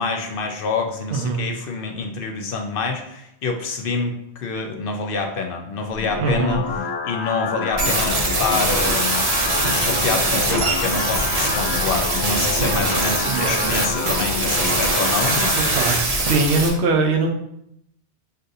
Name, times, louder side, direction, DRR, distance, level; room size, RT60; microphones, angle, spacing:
voice 1, 0.0-6.6 7.0-9.3 9.7-15.7, left 4 dB, 60° left, 3 dB, 0.7 m, -27 dB
voice 2, 1.1-1.4 6.2-6.6 12.6-12.9 13.2-13.9 15.7-17.3, right 3 dB, 85° right, 3 dB, 0.9 m, -22 dB
sound 1, 5.9-15.9, left 4 dB, 40° left, 0.4 m, -28 dB
sound 2, 7.8-16.7, right 2 dB, 40° right, 0.7 m, -22 dB
6.4 x 2.6 x 2.6 m, 0.77 s
omnidirectional pair, 1.1 m